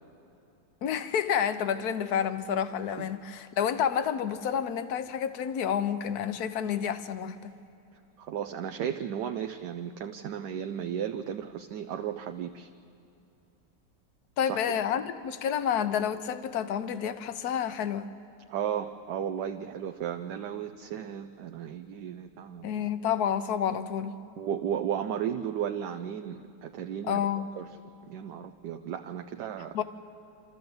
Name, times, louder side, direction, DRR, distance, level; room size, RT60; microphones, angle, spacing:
voice 1, 0.8-7.5 14.4-18.1 22.6-24.2 27.0-27.5 29.7-29.8, left 8 dB, 65° left, 1.3 m, -29 dB
voice 2, 8.2-12.7 14.4-14.6 18.5-22.8 24.4-27.3 27.6-27.7 28.1-29.8, right 9 dB, 70° right, 1.2 m, -34 dB
27.5 x 13.5 x 7.8 m
omnidirectional pair, 2.0 m